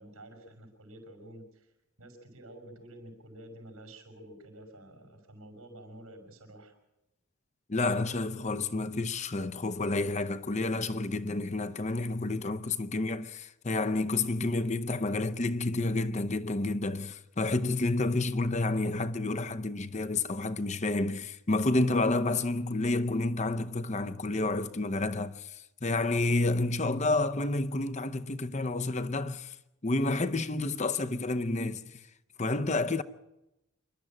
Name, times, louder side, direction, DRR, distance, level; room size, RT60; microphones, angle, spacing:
voice 1, 0.0-1.7 2.0-6.7, right 1 dB, 85° right, 6.0 m, -50 dB
voice 2, 7.7-29.6 29.8-32.0 32.4-33.0, left 2 dB, 30° left, 0.7 m, -30 dB
27.0 x 12.0 x 9.0 m
head